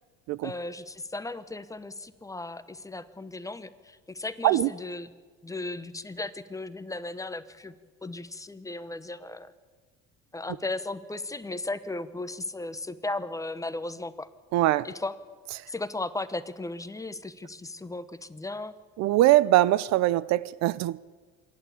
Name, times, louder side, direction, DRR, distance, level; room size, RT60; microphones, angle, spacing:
voice 1, 0.4-5.1 5.4-7.7 8.0-9.5 10.3-14.3 14.8-15.2 15.7-18.7, left 2 dB, 10° left, 0.9 m, -36 dB
voice 2, 14.5-14.9 19.0-21.0, right 15 dB, 65° right, 0.6 m, -22 dB
27.0 x 11.5 x 8.4 m
cardioid pair, 115°, 29 cm